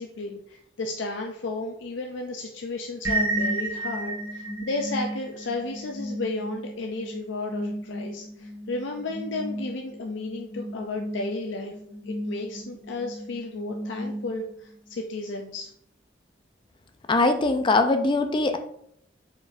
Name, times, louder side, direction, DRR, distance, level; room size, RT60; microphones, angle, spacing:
voice 1, 0.0-11.7 12.1-15.7, left 2 dB, 80° left, 2 dB, 0.5 m, -33 dB
sound 1, 3.0-14.7, right 1 dB, 15° right, 1.4 m, -33 dB
voice 2, 17.1-18.6, left 3 dB, 25° left, 7 dB, 0.4 m, -21 dB
4.9 x 4.1 x 2.5 m, 0.71 s
head